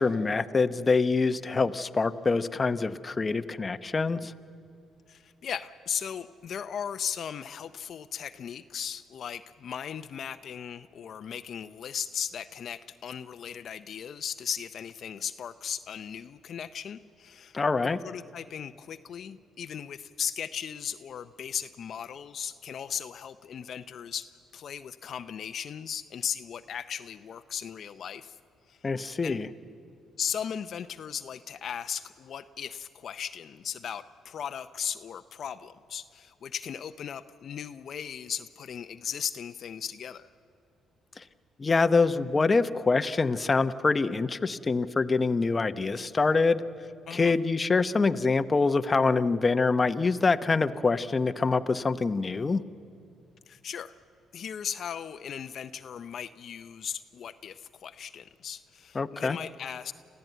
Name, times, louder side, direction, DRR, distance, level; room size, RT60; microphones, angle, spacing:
voice 1, 0.0-4.3 17.5-18.0 28.8-29.5 41.6-46.6 47.1-52.6 58.9-59.4, left 4 dB, 30° left, 10 dB, 0.8 m, -25 dB
voice 2, 5.1-17.6 18.0-28.4 28.7-28.9 29.2-29.4 30.2-40.3 47.1-47.4 53.5-53.9 54.3-59.9, left 8 dB, 60° left, 10 dB, 0.6 m, -37 dB
27.0 x 15.0 x 9.2 m, 2.5 s
cardioid pair, 90°, 0 cm